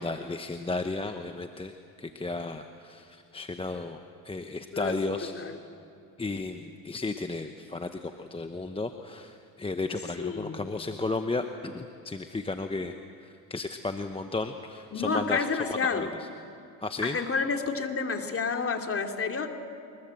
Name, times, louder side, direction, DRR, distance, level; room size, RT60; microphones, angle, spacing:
voice 1, 0.0-1.7 2.0-4.0 4.2-5.3 6.2-12.9 13.2-15.5 15.9-16.1 16.8-17.2, left 3 dB, 15° left, 7 dB, 0.9 m, -34 dB
voice 2, 10.2-10.6 14.9-16.1 17.0-19.5, left 5 dB, 35° left, 4 dB, 2.6 m, -29 dB
23.5 x 21.5 x 7.8 m, 2.7 s
supercardioid pair, 90°, 41 cm